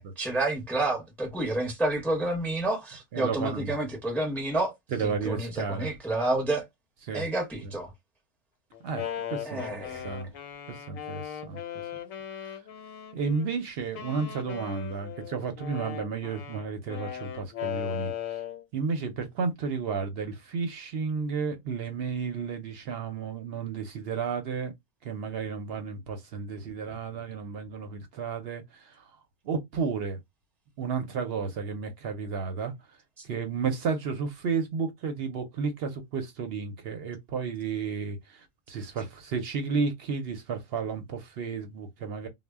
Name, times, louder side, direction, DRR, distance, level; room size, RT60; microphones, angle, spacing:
voice 1, 0.0-4.7 5.0-6.7 7.1-7.9 9.5-10.1 33.2-33.3, right 2 dB, ahead, 0.5 m, -29 dB
voice 2, 3.1-3.7 4.9-5.9 7.1-7.3 8.8-10.3 10.7-11.6 12.4-12.6 13.1-18.4 18.7-24.7 25.0-29.1 29.4-30.2 30.8-32.7 33.2-42.3, right 5 dB, 65° right, 0.7 m, -32 dB
Wind instrument woodwind instrument, 8.7-13.5 13.9-18.6, left 10 dB, 85° left, 1.0 m, -38 dB
2.1 x 2.1 x 3.3 m
omnidirectional pair, 1.3 m